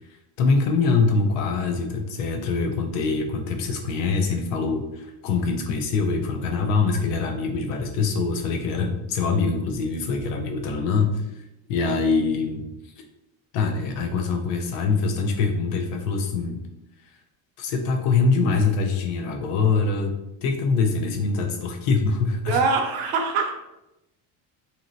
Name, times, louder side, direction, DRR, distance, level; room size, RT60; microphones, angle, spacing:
voice 1, 0.4-11.4 11.7-12.9 13.5-16.6 17.6-22.6, left 4 dB, 70° left, 4 dB, 0.6 m, -24 dB
voice 2, 22.5-23.5, right 4 dB, 70° right, 3 dB, 0.7 m, -23 dB
3.0 x 2.7 x 2.5 m, 0.91 s
cardioid pair, 175°, 46 cm